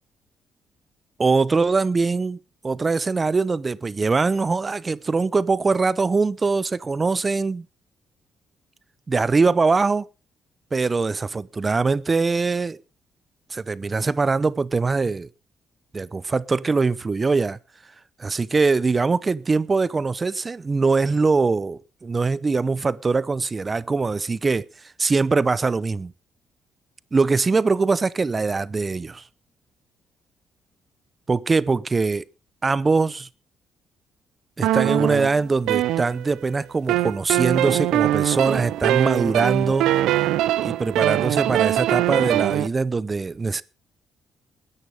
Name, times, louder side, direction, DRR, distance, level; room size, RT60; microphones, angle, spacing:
voice 1, 1.2-2.4 2.6-7.7 9.1-10.1 10.7-12.8 13.5-15.3 15.9-17.6 18.2-26.1 27.1-29.2 31.3-32.2 32.6-33.3 34.6-39.9 40.6-43.6, right 4 dB, 30° right, 0.7 m, -22 dB
sound 1, 34.6-36.5 36.9-42.7, right 14 dB, 90° right, 0.7 m, -22 dB
21.0 x 11.0 x 3.5 m
cardioid pair, 90°, 0 cm